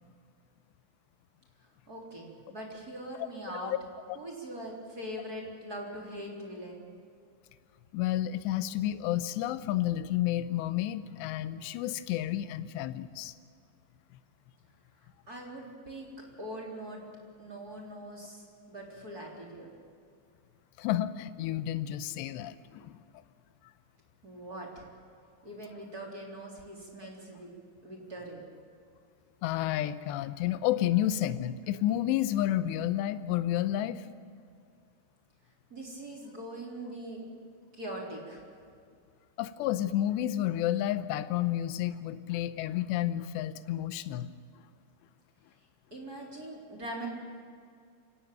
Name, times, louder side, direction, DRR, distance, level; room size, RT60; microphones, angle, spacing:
voice 1, 1.9-3.7 4.1-6.8 15.3-16.1 16.4-17.0 17.4-18.4 18.7-19.7 24.2-24.9 25.4-27.5 27.8-28.5 35.7-37.2 37.7-38.4 45.9-47.1, right 1 dB, 20° right, -1 dB, 3.3 m, -42 dB
voice 2, 7.9-13.3 20.8-23.0 29.4-34.1 39.4-44.3, left 13 dB, 75° left, 12 dB, 2.6 m, -30 dB
26.0 x 17.5 x 9.1 m, 2.3 s
omnidirectional pair, 5.7 m